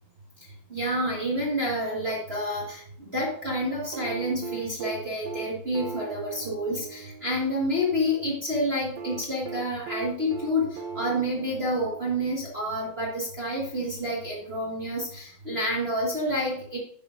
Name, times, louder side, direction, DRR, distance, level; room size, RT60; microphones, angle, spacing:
voice 1, 0.7-16.8, equal, 35° right, -5 dB, 1.0 m, -29 dB
sound 1, 3.9-8.0 9.0-12.6 14.0-14.1, right 5 dB, 75° right, 2.0 m, -39 dB
11.0 x 6.7 x 2.5 m, 0.64 s
omnidirectional pair, 3.6 m